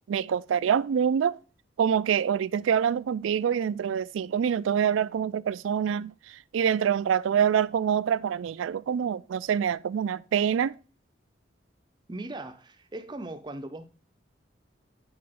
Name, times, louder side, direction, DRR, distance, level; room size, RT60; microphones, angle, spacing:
voice 1, 0.1-1.4 1.8-10.8, right 8 dB, 90° right, 0.3 m, -26 dB
voice 2, 12.1-13.8, right 2 dB, 25° right, 0.5 m, -39 dB
8.8 x 4.2 x 3.6 m
head